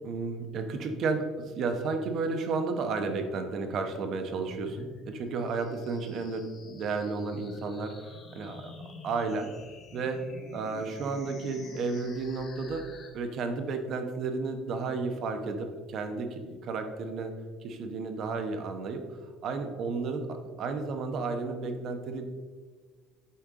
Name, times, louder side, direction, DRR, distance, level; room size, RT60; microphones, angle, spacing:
voice 1, 0.0-7.9 8.3-8.7 9.0-9.5 9.9-10.2 10.5-12.9 13.1-17.3 17.6-19.0 19.4-22.2, right 4 dB, 50° right, 6 dB, 1.0 m, -32 dB
sound 1, 4.3-13.1, left 3 dB, 40° left, 1.8 m, -48 dB
8.5 x 5.4 x 3.7 m, 1.5 s
cardioid pair, 140°, 0 cm